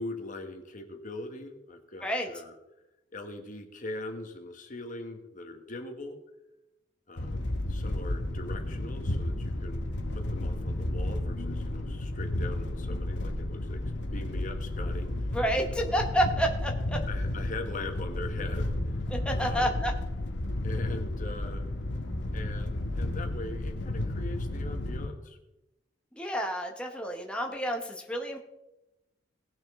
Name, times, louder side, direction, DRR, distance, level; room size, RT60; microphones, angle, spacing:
voice 1, 0.0-2.6 3.1-6.2 7.1-9.9 10.1-13.8 14.1-16.1 17.0-19.0 19.3-19.8 20.6-21.6 22.3-25.4, left 2 dB, 45° left, 5 dB, 1.3 m, -41 dB
sound 1, 7.2-25.1, left 1 dB, 70° left, 1.0 m, -32 dB
voice 2, 15.3-17.0 19.1-19.9 26.2-28.4, right 1 dB, 5° left, 1 dB, 1.1 m, -29 dB
18.5 x 6.2 x 3.7 m, 0.93 s
head